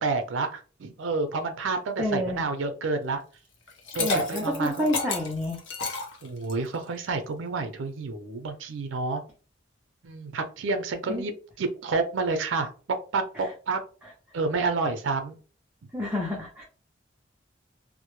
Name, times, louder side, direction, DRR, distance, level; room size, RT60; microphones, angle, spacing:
voice 1, 0.0-3.2 3.9-4.9 6.2-9.2 10.0-11.3 11.6-13.8 14.3-15.4, right 3 dB, 85° right, 7 dB, 0.5 m, -29 dB
voice 2, 2.0-2.4 4.0-5.6 11.1-11.3 13.4-13.5 15.9-16.6, left 1 dB, 10° right, -4 dB, 0.4 m, -29 dB
Liquid, 3.7-6.7, left 3 dB, 80° left, 0.6 m, -31 dB
2.1 x 2.0 x 3.0 m, 0.38 s
head